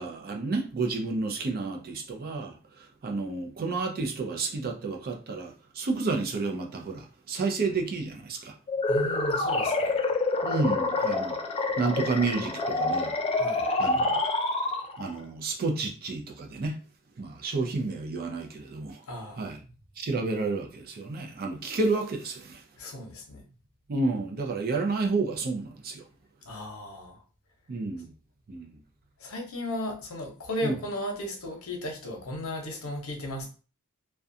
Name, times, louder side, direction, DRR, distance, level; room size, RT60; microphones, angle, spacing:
voice 1, 0.0-2.5 3.0-8.5 10.4-11.3 11.8-13.1 13.8-14.2 15.0-16.8 17.2-19.0 19.4-19.6 20.0-22.6 23.9-26.0 27.7-28.1 28.5-28.8 30.6-30.8, right 3 dB, 45° right, 0.4 m, -30 dB
sound 1, 8.7-15.2, left 2 dB, 25° left, 0.3 m, -27 dB
voice 2, 8.9-10.0 13.4-13.6 19.1-19.5 22.8-23.4 26.4-27.2 29.2-33.5, left 1 dB, 70° left, 0.7 m, -35 dB
2.4 x 2.2 x 2.6 m
head